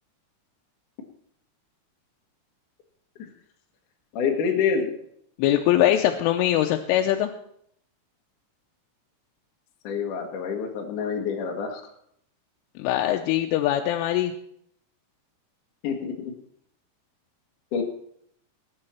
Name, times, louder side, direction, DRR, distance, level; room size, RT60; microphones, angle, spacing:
voice 1, 4.1-4.9 9.8-11.8 15.8-16.3 17.7-17.8, left 6 dB, 60° left, 2 dB, 2.2 m, -27 dB
voice 2, 5.4-7.3 12.8-14.3, left 12 dB, 90° left, 4 dB, 3.2 m, -22 dB
19.5 x 8.7 x 4.4 m, 0.69 s
omnidirectional pair, 5.6 m